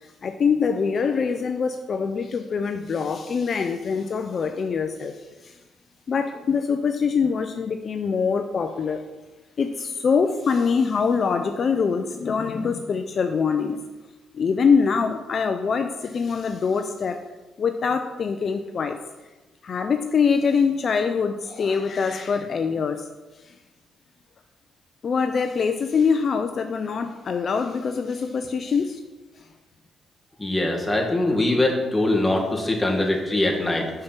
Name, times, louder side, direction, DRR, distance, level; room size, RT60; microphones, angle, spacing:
voice 1, 0.0-5.6 6.1-9.0 9.6-13.8 14.3-17.3 17.6-19.0 19.6-23.1 23.4-23.5 25.0-29.0 29.4-29.5, left 5 dB, 50° left, 6 dB, 0.5 m, -24 dB
voice 2, 30.4-33.9, left 1 dB, 5° left, -1 dB, 1.9 m, -22 dB
6.3 x 5.8 x 6.0 m, 1.2 s
cardioid pair, 90°, 0 cm